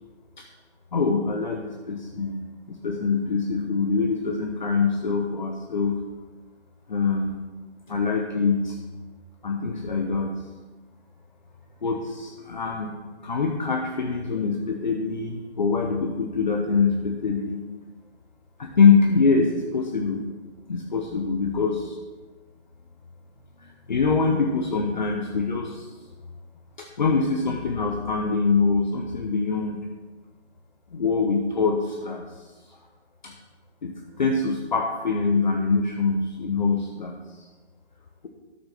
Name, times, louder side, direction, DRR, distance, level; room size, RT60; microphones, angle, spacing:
voice 1, 0.9-6.0 6.9-7.4 7.9-8.8 9.4-10.4 11.8-17.6 18.6-20.2 20.7-22.0 23.6-25.9 26.8-29.8 30.9-32.2 32.7-32.8 33.2-33.3 33.8-37.5, left 4 dB, 40° left, 1 dB, 1.0 m, -24 dB
12.5 x 6.7 x 6.0 m, 1.3 s
figure-of-eight pair, 160°, 35 cm